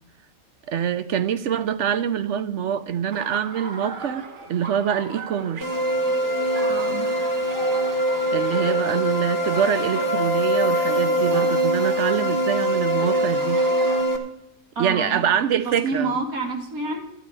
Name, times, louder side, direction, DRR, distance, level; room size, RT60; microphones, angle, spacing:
voice 1, 0.7-5.7 8.3-13.6 14.8-16.1, right 8 dB, 65° right, 0.9 m, -25 dB
Laughter, 3.1-14.0, right 4 dB, 40° right, 1.0 m, -38 dB
sound 1, 5.6-14.2, right 1 dB, 15° right, 1.0 m, -23 dB
voice 2, 6.7-7.1 14.8-15.3 15.6-17.0, right 3 dB, 85° right, 2.4 m, -28 dB
12.0 x 11.0 x 4.8 m
omnidirectional pair, 1.5 m